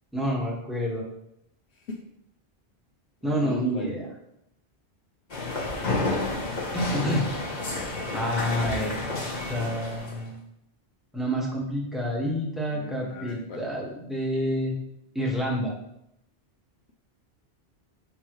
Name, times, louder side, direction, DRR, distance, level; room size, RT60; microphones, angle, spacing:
voice 1, 0.1-1.0 3.2-4.1 6.7-7.3 8.1-10.3 11.1-14.7 15.1-15.7, equal, ahead, -3 dB, 1.5 m, -28 dB
voice 2, 3.4-3.9 6.9-7.1 12.7-13.6, left 2 dB, 90° left, 0 dB, 1.1 m, -39 dB
sound 1, 5.3-10.2, left 2 dB, 45° left, 1.3 m, -30 dB
7.3 x 5.3 x 3.1 m, 0.79 s
omnidirectional pair, 1.1 m